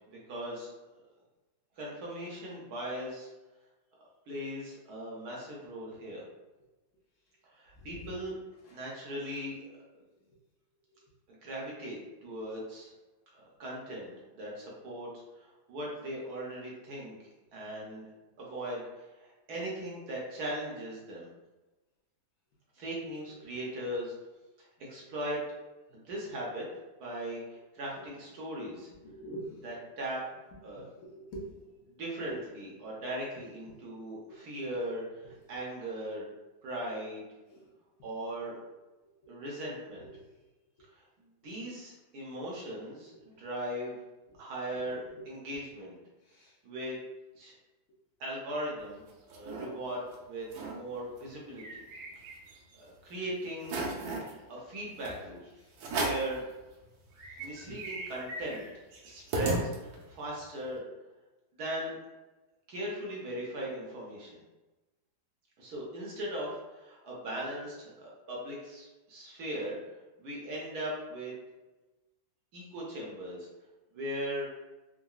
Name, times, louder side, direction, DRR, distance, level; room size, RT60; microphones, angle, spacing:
voice 1, 0.1-0.7 1.8-3.3 4.3-6.2 7.5-8.4 8.7-9.7 11.3-12.9 13.3-15.1 15.4-17.2 17.5-18.1 18.4-21.3 22.8-24.1 24.9-25.4 25.9-26.7 27.0-28.9 29.6-30.2 30.6-30.9 31.9-36.3 36.6-37.3 38.0-38.6 39.3-40.1 41.4-44.0 44.4-46.0 46.6-47.0 47.4-47.5 48.2-49.0 49.3-51.8 52.8-53.9 54.5-55.4 55.9-56.4 57.4-58.7 59.0-60.8 61.6-62.0 62.7-64.4 65.6-69.8 70.2-71.3 72.5-73.5 73.9-74.4, right 1 dB, 65° right, -4 dB, 1.1 m, -39 dB
voice 2, 7.8-8.1 8.6-8.8 28.7-29.6 30.9-31.5 32.3-32.4 34.3-34.4 35.5-35.6 37.5-37.7 40.1-40.3 43.1-43.4 44.8-45.3 46.3-46.5 57.3-57.4, right 2 dB, 65° left, -3 dB, 0.9 m, -45 dB
sound 1, 48.8-49.7 50.1-50.2 50.4-50.8 51.2-52.8 53.2-53.3 53.6-54.3 55.0-55.2 55.8-56.4 56.8-56.9 57.1-60.2, right 2 dB, 80° right, 1.4 m, -36 dB
3.7 x 2.1 x 2.3 m, 1.1 s
omnidirectional pair, 2.1 m